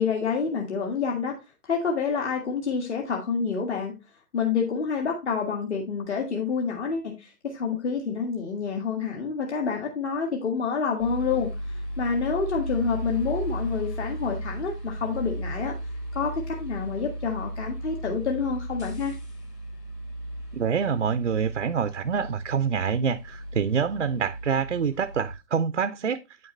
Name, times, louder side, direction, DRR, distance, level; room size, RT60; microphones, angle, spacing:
voice 1, 0.0-1.3 1.6-3.9 4.3-15.7 16.1-19.2, left 5 dB, 45° left, 1.9 m, -28 dB
sound 1, 11.0-25.4, right 1 dB, 85° left, 4.0 m, -35 dB
voice 2, 20.5-26.2, right 6 dB, 45° right, 0.5 m, -26 dB
8.7 x 6.6 x 3.1 m
figure-of-eight pair, 150°, 49 cm